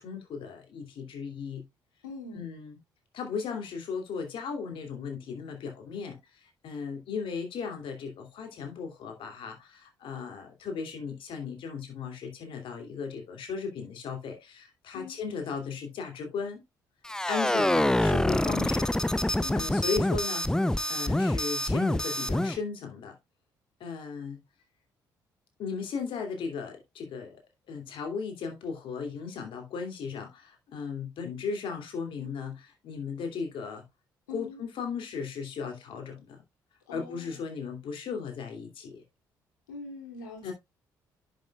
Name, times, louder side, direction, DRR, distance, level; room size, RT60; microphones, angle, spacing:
voice 1, 0.0-1.6 2.3-2.8 3.1-6.2 6.6-16.6 17.3-18.9 19.2-20.5 20.9-23.1 23.8-24.4 25.6-27.4 27.7-33.8 34.3-36.4 36.9-39.0 40.4-40.5, left 5 dB, 60° left, 2.7 m, -36 dB
voice 2, 2.0-2.4 14.9-15.2 19.4-19.7 34.3-34.6 36.9-37.4 39.7-40.5, left 3 dB, 85° left, 2.7 m, -43 dB
sound 1, 17.0-22.6, left 1 dB, 5° left, 0.6 m, -26 dB
10.5 x 6.6 x 2.3 m
hypercardioid pair, 45°, 10 cm